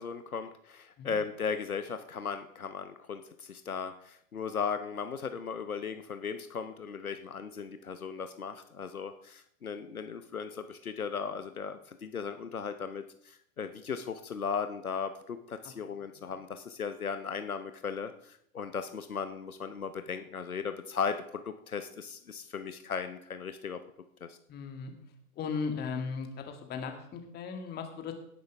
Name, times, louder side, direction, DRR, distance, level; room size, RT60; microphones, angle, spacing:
voice 1, 0.0-23.8 24.2-24.4, left 6 dB, 75° left, 9 dB, 1.0 m, -37 dB
voice 2, 16.0-16.3 24.5-24.9 25.4-28.1, left 5 dB, 20° left, 5 dB, 2.0 m, -37 dB
17.5 x 10.5 x 3.4 m, 0.69 s
figure-of-eight pair, 105°, 43 cm